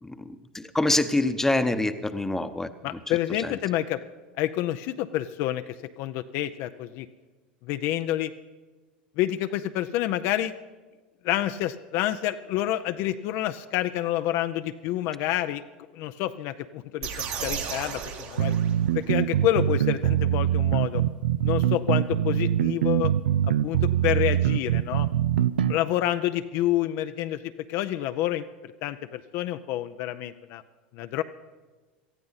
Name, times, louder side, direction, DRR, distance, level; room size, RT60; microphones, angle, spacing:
voice 1, 0.0-3.5, left 2 dB, 10° left, 10 dB, 0.9 m, -27 dB
voice 2, 2.8-4.0 4.4-5.6 6.0-7.1 7.6-8.3 9.2-10.5 11.2-15.6 15.9-18.6 18.9-21.0 21.4-23.1 23.4-25.1 25.7-30.6 30.9-31.2, left 13 dB, 60° left, 10 dB, 0.5 m, -28 dB
sound 1, 17.0-19.1, right 7 dB, 60° right, 2.2 m, -34 dB
sound 2, 18.4-25.8, right 11 dB, 85° right, 0.4 m, -23 dB
18.5 x 13.5 x 4.1 m, 1.3 s
hypercardioid pair, 85°, 5 cm